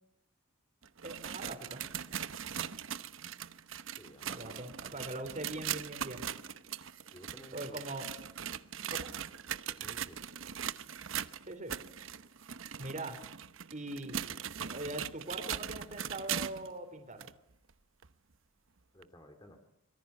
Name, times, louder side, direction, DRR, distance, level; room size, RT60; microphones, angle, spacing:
sound 1, 0.8-16.7 17.2-17.3 18.0-18.1 19.0-19.1, right 9 dB, 60° right, 0.9 m, -40 dB
voice 1, 1.0-1.8 4.3-6.3 7.5-8.1 8.9-9.1 11.4-11.7 12.8-13.2 13.7-14.3 14.7-17.3, right 1 dB, 35° right, 5 dB, 3.8 m, -42 dB
voice 2, 4.0-4.5 7.1-7.8 9.7-10.2 18.9-19.6, equal, 20° left, 5 dB, 2.5 m, -54 dB
25.0 x 22.5 x 8.3 m, 0.79 s
head